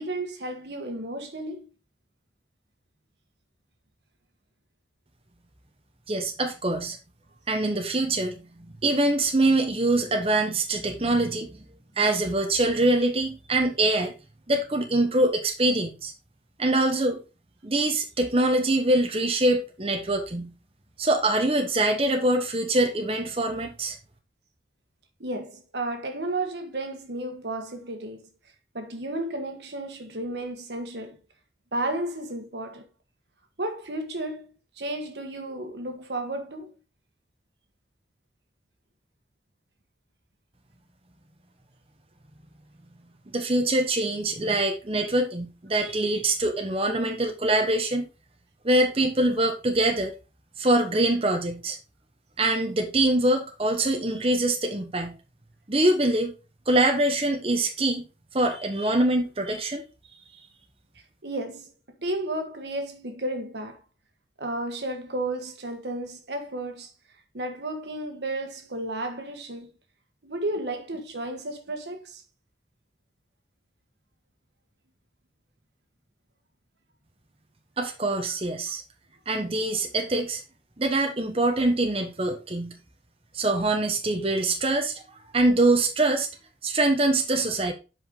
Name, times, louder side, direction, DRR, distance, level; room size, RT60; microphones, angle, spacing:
voice 1, 0.0-1.7 25.2-28.3 28.7-31.2 31.7-32.9 33.6-36.7 61.2-61.7 62.0-63.8 64.4-66.9 67.3-69.7 70.2-72.2, right 1 dB, 80° right, 1.4 m, -33 dB
voice 2, 6.1-7.0 7.5-11.6 12.0-14.1 14.5-16.1 16.6-17.2 17.6-20.5 21.0-24.0 43.3-48.1 48.6-50.1 50.6-51.8 52.4-55.2 55.7-56.3 56.7-58.0 58.3-59.8 77.8-78.8 79.3-80.4 80.8-82.8 83.3-84.9 85.3-86.3 86.6-87.7, right 2 dB, 30° right, 1.0 m, -24 dB
7.9 x 5.1 x 3.7 m
head